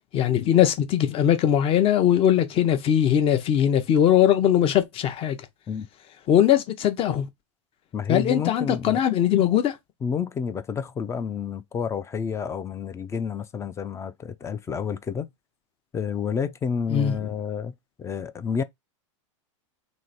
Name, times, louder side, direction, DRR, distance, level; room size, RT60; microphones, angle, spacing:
voice 1, 0.1-5.4 6.3-7.3 8.1-9.8 16.9-17.1, left 10 dB, 35° left, 0.8 m, -20 dB
voice 2, 7.9-9.0 10.0-15.3 15.9-17.7 18.0-18.6, left 6 dB, 15° left, 0.4 m, -29 dB
3.1 x 2.5 x 3.9 m
hypercardioid pair, 115°, 17 cm